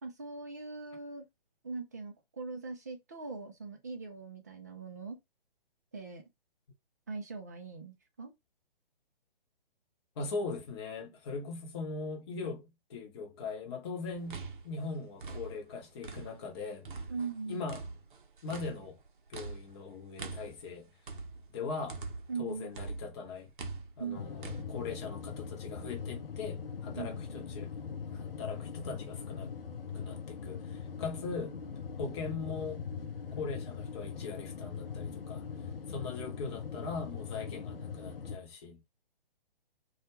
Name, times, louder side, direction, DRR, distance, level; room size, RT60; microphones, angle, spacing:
voice 1, 0.0-1.2 1.6-5.2 5.9-6.2 7.1-8.3 17.1-17.6 22.3-22.7 24.0-24.3 27.0-27.2, right 4 dB, 20° right, 0.3 m, -41 dB
voice 2, 10.2-14.4 14.6-16.9 17.5-17.9 18.4-19.0 19.3-20.9 21.5-22.0 22.4-23.5 24.0-27.8 28.1-29.5 29.9-31.6 32.0-32.8 33.3-35.5 35.9-38.8, left 4 dB, 30° left, 0.8 m, -40 dB
sound 1, 14.1-16.5 16.8-22.4 22.7-24.6, right 4 dB, 60° right, 0.6 m, -44 dB
sound 2, 24.1-38.4, left 6 dB, 70° left, 0.5 m, -41 dB
2.3 x 2.1 x 2.9 m
figure-of-eight pair, 130°, 29 cm